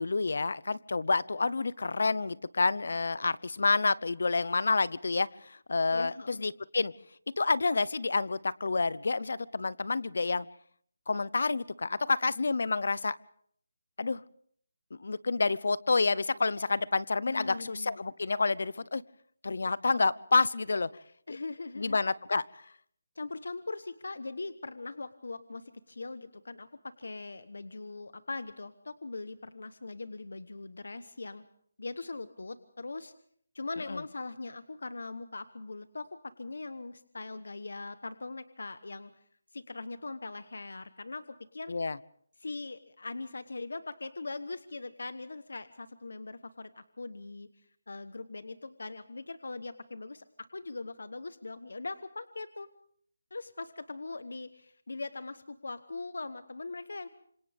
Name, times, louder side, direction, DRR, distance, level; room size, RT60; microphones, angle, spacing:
voice 1, 0.0-6.9 7.4-10.5 11.1-13.2 14.0-14.2 15.0-19.0 19.4-20.9 21.3-21.4 21.8-22.6 33.9-34.0 41.7-42.0, left 3 dB, 65° left, 20 dB, 0.8 m, -29 dB
voice 2, 5.9-6.4 17.3-18.0 21.3-22.0 23.1-31.4 31.8-33.1 33.5-39.2 39.5-41.7 42.4-52.7 53.3-57.1, left 3 dB, 80° left, 13 dB, 1.1 m, -41 dB
27.5 x 26.0 x 3.6 m, 0.62 s
hypercardioid pair, 175°, 0 cm